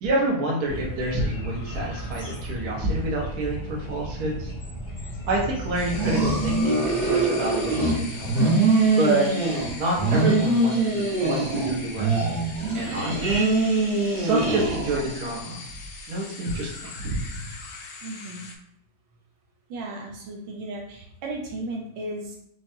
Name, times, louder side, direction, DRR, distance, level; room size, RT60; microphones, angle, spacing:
voice 1, 0.0-4.5 5.3-8.3 8.9-9.3 9.8-12.1 12.7-13.4 14.1-15.6 16.1-17.5, right 2 dB, 55° right, -3 dB, 1.4 m, -28 dB
sound 1, 0.6-6.6, right 1 dB, 35° left, 0.7 m, -35 dB
sound 2, 5.7-18.5, left 4 dB, 70° left, 1.0 m, -41 dB
sound 3, 5.9-8.0 8.2-9.7 10.0-11.7 12.0-15.2, right 3 dB, 35° right, 0.7 m, -23 dB
voice 2, 18.0-18.5 19.7-22.4, right 2 dB, 85° right, -1 dB, 1.6 m, -35 dB
5.4 x 2.3 x 2.7 m, 0.71 s
omnidirectional pair, 2.2 m